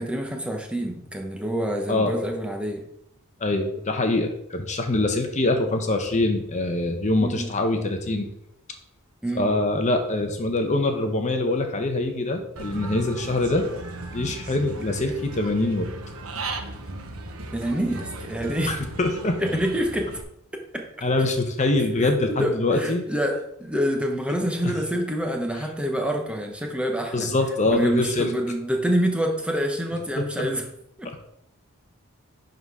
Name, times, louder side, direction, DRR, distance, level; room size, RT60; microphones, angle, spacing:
voice 1, 0.0-2.8 7.2-7.5 9.2-9.5 17.5-18.8 19.4-20.1 20.7-20.8 22.0-27.3 27.7-30.7 31.0-31.1, equal, 5° right, 2 dB, 1.0 m, -27 dB
voice 2, 3.4-8.3 9.4-13.7 14.1-15.9 18.6-19.4 21.0-23.0 24.6-24.7 27.1-28.3 30.2-30.5 31.0-31.1, left 2 dB, 35° left, 5 dB, 0.9 m, -24 dB
Human voice / Bird, 12.6-20.2, right 2 dB, 85° right, 1.1 m, -36 dB
11.0 x 3.9 x 4.8 m, 0.77 s
head